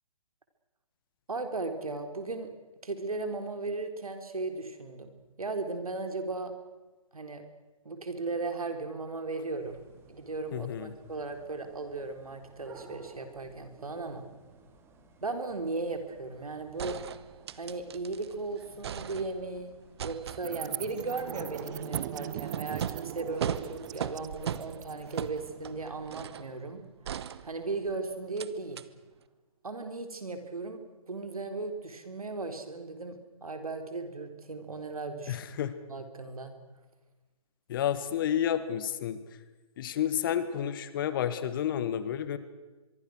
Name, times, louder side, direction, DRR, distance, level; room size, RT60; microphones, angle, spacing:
voice 1, 1.3-2.5 2.8-6.5 7.1-7.4 7.8-9.8 10.1-14.3 15.2-17.0 17.5-19.7 20.0-26.8 27.4-28.8 29.6-35.4 35.9-36.5, right 3 dB, 80° right, 7 dB, 4.1 m, -36 dB
sound 1, 9.6-26.4, right 3 dB, 15° right, 2.7 m, -54 dB
voice 2, 10.5-10.9 35.3-35.7 37.7-39.2 39.8-42.4, left 10 dB, 35° left, 13 dB, 1.8 m, -30 dB
sound 2, 16.3-16.4 16.8-18.3 18.6-19.6 20.0-26.5 27.0-27.9 28.4-28.5 28.8-28.9, right 9 dB, 45° right, 1.1 m, -39 dB
sound 3, 20.4-27.0, right 13 dB, 30° right, 0.8 m, -41 dB
24.5 x 23.0 x 6.4 m, 1.2 s
figure-of-eight pair, 140°, 18 cm